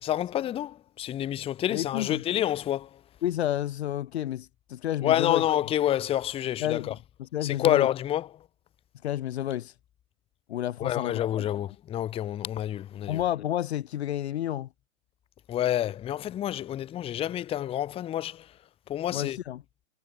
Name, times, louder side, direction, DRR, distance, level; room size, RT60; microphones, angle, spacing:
voice 1, 0.0-3.0 5.0-6.9 7.4-8.3 10.8-13.2 15.5-18.5 18.9-19.4, left 12 dB, 15° left, 1.0 m, -28 dB
voice 2, 1.7-2.2 3.2-5.4 6.6-7.9 9.0-9.7 10.5-11.2 13.1-14.7 19.1-19.6, left 12 dB, 50° left, 1.0 m, -30 dB
figure-of-eight pair, 125°, 42 cm